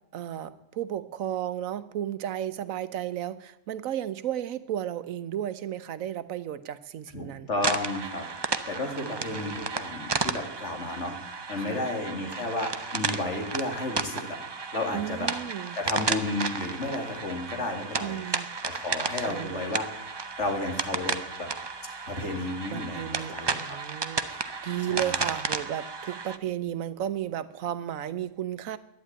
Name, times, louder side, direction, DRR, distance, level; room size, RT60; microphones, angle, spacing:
voice 1, 0.1-7.5 9.0-9.6 11.6-11.9 14.9-15.8 18.0-18.5 19.1-19.7 22.7-28.8, right 11 dB, 90° right, 14 dB, 1.2 m, -34 dB
voice 2, 7.1-8.3 8.7-11.1 11.5-14.4 14.7-15.3 15.7-20.0 20.4-21.5 22.1-23.8 24.9-25.3, left 2 dB, 60° left, 3 dB, 2.7 m, -32 dB
sound 1, 7.6-26.4, right 4 dB, 30° right, 0.5 m, -33 dB
11.5 x 10.5 x 8.7 m, 0.85 s
omnidirectional pair, 1.4 m